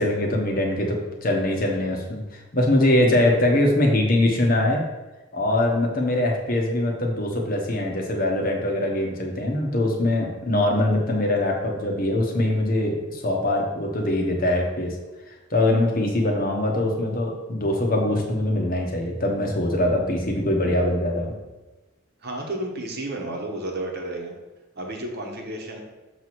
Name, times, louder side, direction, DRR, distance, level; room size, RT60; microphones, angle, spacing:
voice 1, 0.0-4.8 5.3-14.9 15.5-21.4, left 1 dB, 40° left, 0 dB, 1.0 m, -22 dB
voice 2, 22.2-24.3 24.8-25.8, right 1 dB, 45° right, 1 dB, 1.0 m, -32 dB
6.7 x 3.0 x 5.9 m, 1.1 s
head